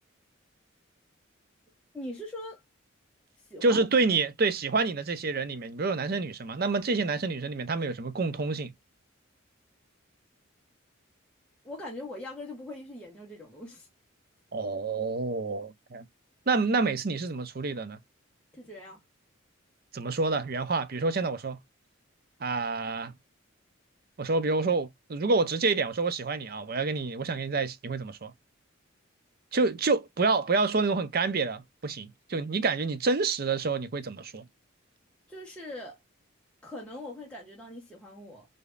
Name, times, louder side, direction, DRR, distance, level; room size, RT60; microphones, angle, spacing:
voice 1, 1.9-2.6 3.5-3.9 11.6-13.9 18.5-19.0 35.3-36.0 36.6-38.5, left 1 dB, 5° left, 1.2 m, -41 dB
voice 2, 3.6-8.7 14.5-16.1 16.5-18.0 19.9-21.6 22.4-23.1 24.2-28.3 29.5-34.4, right 3 dB, 45° right, 0.6 m, -28 dB
5.0 x 2.7 x 2.3 m
head